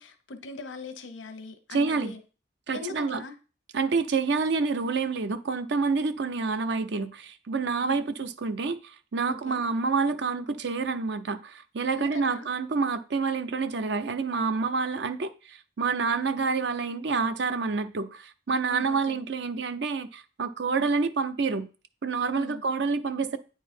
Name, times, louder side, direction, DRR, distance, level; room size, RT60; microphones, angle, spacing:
voice 1, 0.0-2.2 2.7-3.3 7.8-8.0 9.3-9.6 11.9-12.5 18.7-19.2 22.3-22.6, left 3 dB, 90° left, 0.9 m, -40 dB
voice 2, 1.7-2.1 2.7-3.2 3.7-21.7 22.0-23.4, right 4 dB, 65° right, 0.6 m, -28 dB
9.1 x 4.0 x 4.3 m
head